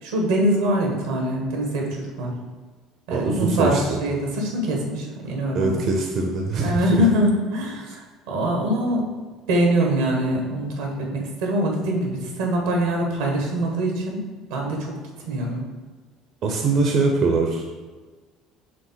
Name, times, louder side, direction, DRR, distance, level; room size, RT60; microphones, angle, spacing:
voice 1, 0.0-2.3 3.1-5.8 6.6-9.0 9.5-14.2 14.5-15.6, right 1 dB, 90° right, 0 dB, 1.5 m, -23 dB
voice 2, 3.1-4.0 5.5-7.0 16.4-17.7, right 3 dB, 50° right, 1 dB, 0.7 m, -22 dB
5.1 x 3.6 x 5.7 m, 1.4 s
supercardioid pair, 105°, 0 cm